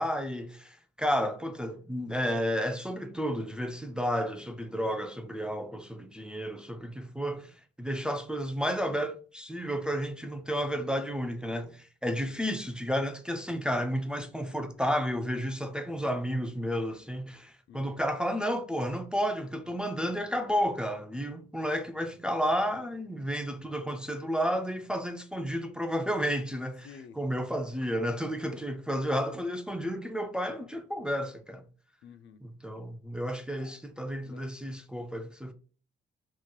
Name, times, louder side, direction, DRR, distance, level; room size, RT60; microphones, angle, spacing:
voice 1, 0.0-26.9 27.2-31.6 32.4-35.5, equal, 5° right, 0.3 m, -32 dB
voice 2, 17.7-18.1 26.8-27.2 32.0-32.4 33.6-33.8 34.2-34.5, left 6 dB, 70° left, 0.4 m, -51 dB
2.9 x 2.9 x 2.3 m
cardioid pair, 90°, 20 cm